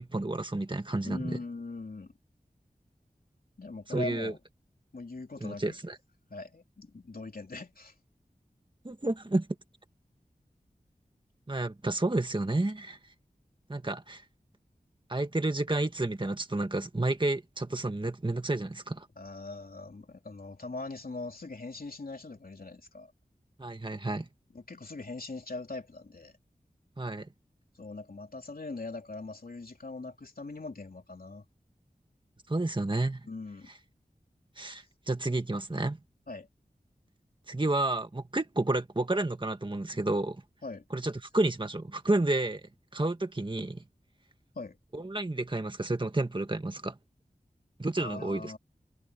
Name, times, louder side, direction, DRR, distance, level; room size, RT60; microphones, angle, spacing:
voice 1, 0.0-1.4 3.9-4.3 5.4-6.0 8.8-9.5 11.5-13.0 13.7-14.2 15.1-19.1 23.6-24.2 27.0-27.3 32.5-33.2 34.6-36.0 37.5-40.4 40.9-43.8 44.9-46.9 47.8-48.5, right 2 dB, 30° right, 1.8 m, -30 dB
voice 2, 1.0-2.1 3.6-4.4 4.9-5.8 6.3-7.9 19.2-23.1 24.5-26.3 27.8-31.4 33.2-33.7 36.3-36.5 40.6-40.8 44.5-44.8 48.0-48.6, left 3 dB, 70° left, 3.2 m, -41 dB
wide cardioid pair, 55°, 16 cm